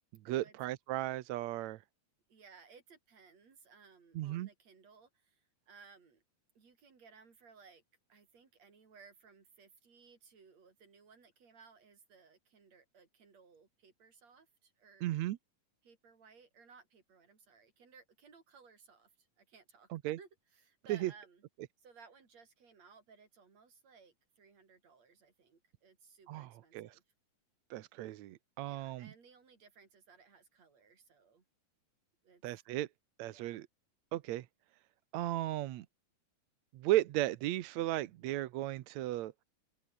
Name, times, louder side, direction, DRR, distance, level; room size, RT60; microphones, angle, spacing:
voice 1, 0.3-1.8 4.2-4.5 15.0-15.4 19.9-20.2 20.9-21.1 26.3-27.0 27.7-29.1 32.4-32.9 33.2-33.7 34.1-34.5 35.1-35.9 36.7-39.3, right 15 dB, 70° right, 1.8 m, -35 dB
voice 2, 2.3-6.2 6.5-7.8 8.1-15.2 15.8-19.9 20.2-21.4 21.8-27.0 28.6-31.4 32.2-32.4 33.3-33.6, right 5 dB, 50° right, 5.2 m, -61 dB
omnidirectional pair, 3.9 m